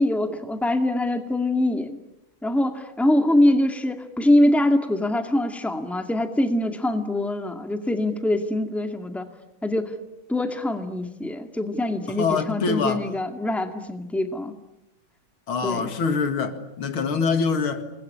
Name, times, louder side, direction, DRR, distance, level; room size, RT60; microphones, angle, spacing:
voice 1, 0.0-2.0 2.4-9.3 9.6-9.9 10.3-14.5 15.6-15.9, left 1 dB, ahead, 2.0 m, -23 dB
voice 2, 12.2-13.0 15.5-17.8, left 5 dB, 90° left, 2.9 m, -24 dB
28.5 x 21.5 x 9.9 m
omnidirectional pair, 2.2 m